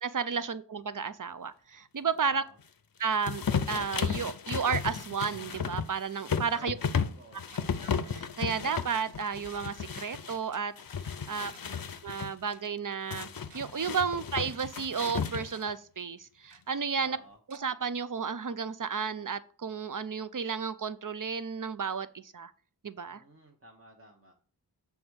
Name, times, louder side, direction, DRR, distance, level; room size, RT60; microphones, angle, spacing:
voice 1, 0.0-2.4 3.0-3.4 3.7-6.8 7.8-10.7 11.3-11.5 12.0-13.3 13.5-17.2 17.5-22.5 22.8-23.2, right 6 dB, 50° right, 14 dB, 0.6 m, -32 dB
voice 2, 2.2-2.6 6.5-7.5 11.2-11.6 17.0-17.4 23.1-24.3, right 1 dB, 35° right, 0 dB, 1.1 m, -55 dB
sound 1, 3.2-10.4 10.8-12.3 13.1-15.7, left 6 dB, 55° left, 0.6 m, -34 dB
Tick-tock, 3.3-3.6 4.5-4.6 5.5-5.9 6.1-6.2 6.5-6.7 7.5-7.6 8.5-8.6 9.4-9.6 10.5-10.6 11.3-11.8 12.1-12.2 12.5-12.6 13.2-13.6 14.1-14.6 15.0-15.2 15.5-15.6 16.5-16.6 17.5-17.6, right 5 dB, 90° right, 0.8 m, -56 dB
7.0 x 3.5 x 6.3 m, 0.42 s
wide cardioid pair, 45°, 42 cm